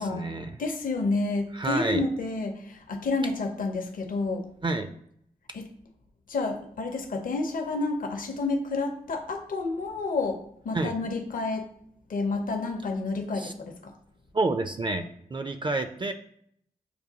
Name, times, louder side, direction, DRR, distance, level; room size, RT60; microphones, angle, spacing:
voice 1, 0.0-0.5 1.5-2.0 4.6-4.9 10.7-10.9 13.4-13.5 14.3-15.0 15.3-16.1, right 2 dB, 30° right, 8 dB, 0.4 m, -28 dB
voice 2, 0.6-4.5 5.5-5.7 6.3-11.7 12.1-13.9, left 3 dB, 60° left, 5 dB, 0.6 m, -30 dB
6.7 x 2.3 x 2.7 m, 0.68 s
supercardioid pair, 40°, 16 cm